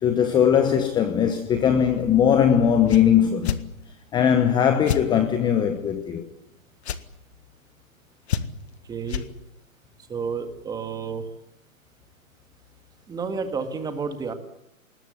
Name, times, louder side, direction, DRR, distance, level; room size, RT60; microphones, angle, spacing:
voice 1, 0.0-3.7 4.1-6.2, left 8 dB, 10° left, 1.0 m, -20 dB
sound 1, 2.9-3.0 3.4-3.6 4.9-5.0 6.8-7.0 8.3-8.7 9.1-9.3, left 8 dB, 50° left, 1.7 m, -27 dB
voice 2, 8.9-9.2 10.1-11.2 13.1-14.3, right 5 dB, 10° right, 1.9 m, -30 dB
22.0 x 20.0 x 9.5 m
hypercardioid pair, 140°, 42 cm